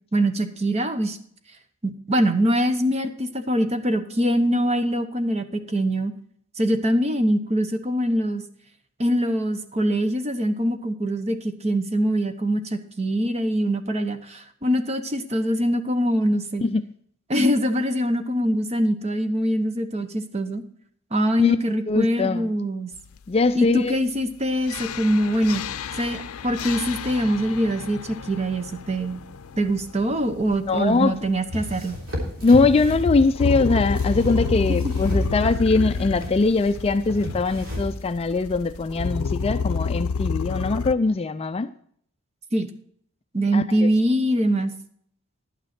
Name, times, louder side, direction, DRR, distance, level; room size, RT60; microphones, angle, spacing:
voice 1, 0.1-1.2 1.8-6.1 6.6-8.4 9.0-16.6 17.3-20.6 21.1-22.9 23.5-25.6 26.0-29.2 29.6-32.0 34.7-34.8 42.5-42.7 43.3-44.7, equal, 30° right, 9 dB, 0.9 m, -23 dB
voice 2, 21.9-22.5 23.3-23.9 30.7-31.1 32.4-41.7 43.5-43.9, left 3 dB, 25° left, 10 dB, 0.3 m, -21 dB
sound 1, 24.7-40.9, left 5 dB, 80° left, 0.5 m, -30 dB
sound 2, 31.5-38.0, left 1 dB, 65° right, 3.4 m, -32 dB
11.0 x 9.2 x 4.3 m, 0.62 s
head